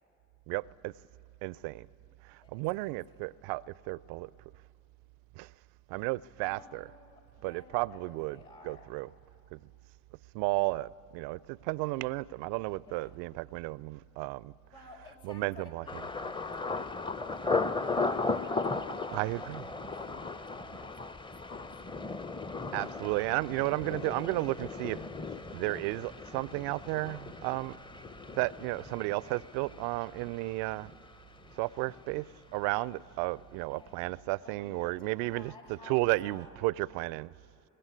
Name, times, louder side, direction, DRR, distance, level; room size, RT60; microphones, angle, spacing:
voice 1, 0.5-0.9 1.4-1.9 2.3-4.3 5.4-5.5 5.9-6.8 7.4-8.4 8.6-9.1 9.5-9.6 10.3-14.5 15.2-15.8 19.1-19.6 22.7-25.0 25.5-27.8 28.3-30.9 31.6-32.3 32.5-35.5 35.9-37.3, right 21 dB, 55° right, 0.5 m, -33 dB
voice 2, 2.4-3.0 6.4-8.9 12.8-13.1 14.7-19.9 20.5-21.6 33.6-34.0 34.4-36.7, left 3 dB, 80° left, 5.0 m, -55 dB
Thunder, 15.9-31.6 31.9-32.5 32.9-33.2, left 3 dB, 10° left, 0.7 m, -37 dB
23.0 x 20.0 x 9.7 m
figure-of-eight pair, 60°, 45 cm